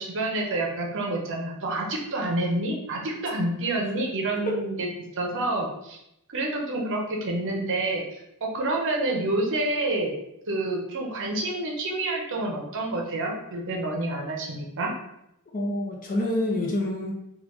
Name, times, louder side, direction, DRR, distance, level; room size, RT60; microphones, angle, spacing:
voice 1, 0.0-4.9 5.1-6.0 6.3-10.1 10.5-14.9, right 2 dB, 60° right, 0 dB, 0.7 m, -28 dB
voice 2, 15.5-17.1, left 1 dB, 40° left, -1 dB, 0.6 m, -27 dB
3.5 x 2.3 x 3.0 m, 0.81 s
head